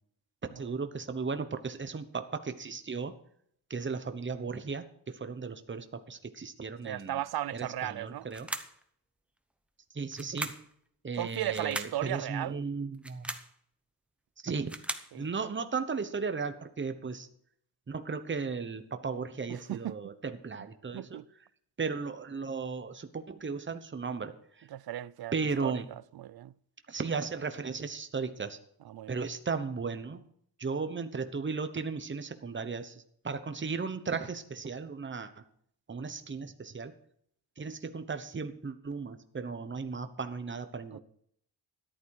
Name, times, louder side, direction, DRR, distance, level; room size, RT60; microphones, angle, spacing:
voice 1, 0.5-3.2 3.7-7.2 7.5-8.5 9.9-10.5 11.0-13.3 14.4-14.7 15.1-17.3 17.9-21.2 21.8-24.7 25.3-25.9 26.9-28.6 29.1-30.2 30.6-35.4 35.9-36.9 37.6-41.0, right 5 dB, 25° right, 1.0 m, -36 dB
voice 2, 6.8-8.3 11.1-12.6 15.1-15.3 19.5-20.0 20.9-21.3 24.7-25.3 25.6-25.7 26.2-26.5 28.9-29.2 40.9-41.0, right 13 dB, 55° right, 0.5 m, -36 dB
sound 1, 8.3-8.8 10.1-10.7 11.5-12.0 12.9-13.5 14.4-15.1, right 1 dB, 5° right, 0.9 m, -38 dB
13.5 x 11.5 x 4.8 m
wide cardioid pair, 145°, 45 cm